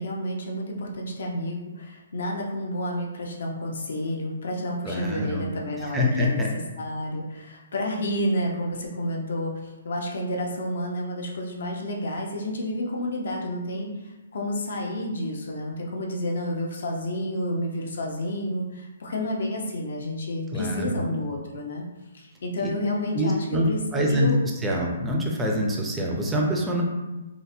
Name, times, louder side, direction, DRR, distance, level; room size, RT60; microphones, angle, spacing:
voice 1, 0.0-21.8 22.1-24.4, left 1 dB, 70° left, 0 dB, 0.6 m, -30 dB
voice 2, 4.8-5.5 5.8-6.5 20.5-21.0 22.6-22.7 23.1-23.7 23.9-24.3 24.6-26.8, equal, 10° right, -1 dB, 0.4 m, -25 dB
3.8 x 2.1 x 2.6 m, 1.1 s
hypercardioid pair, 165°, 0 cm